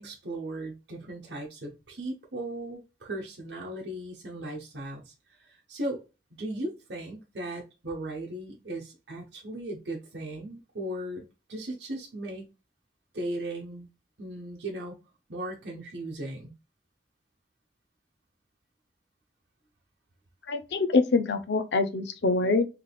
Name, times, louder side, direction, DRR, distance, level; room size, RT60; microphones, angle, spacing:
voice 1, 0.0-6.0 6.4-12.5 13.1-13.9 14.2-15.0 15.3-16.5, right 1 dB, 70° right, 0.9 m, -37 dB
voice 2, 20.5-22.7, left 3 dB, 70° left, 0.6 m, -25 dB
3.4 x 3.3 x 2.2 m
head